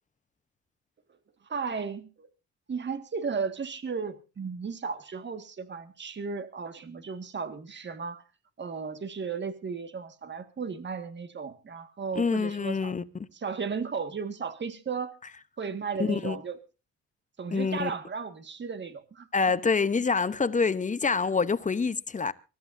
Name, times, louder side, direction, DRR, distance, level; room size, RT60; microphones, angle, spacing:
voice 1, 1.4-2.3 2.7-8.2 8.6-12.9 13.3-15.1 15.6-16.6 17.4-19.3, right 5 dB, 35° right, 1.9 m, -35 dB
voice 2, 12.1-13.3 16.0-16.4 17.5-17.9 19.3-22.3, left 5 dB, 25° left, 0.9 m, -26 dB
24.0 x 14.0 x 2.7 m
cardioid pair, 90°, 30 cm